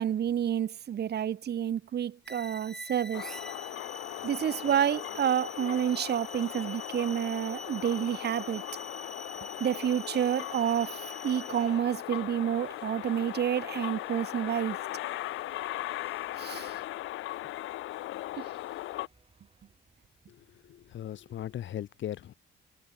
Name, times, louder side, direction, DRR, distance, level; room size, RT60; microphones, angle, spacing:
voice 1, 0.0-3.3 4.2-8.6 9.6-14.8 16.4-16.8 18.3-18.5, right 9 dB, 55° right, 1.3 m, -29 dB
sound 1, 2.3-11.8, equal, 5° left, 3.0 m, -45 dB
sound 2, 3.1-19.1, left 16 dB, 90° left, 1.2 m, -38 dB
sound 3, 7.5-21.8, right 4 dB, 30° right, 6.5 m, -61 dB
voice 2, 20.3-22.3, left 11 dB, 70° left, 2.6 m, -39 dB
cardioid pair, 90°, 20 cm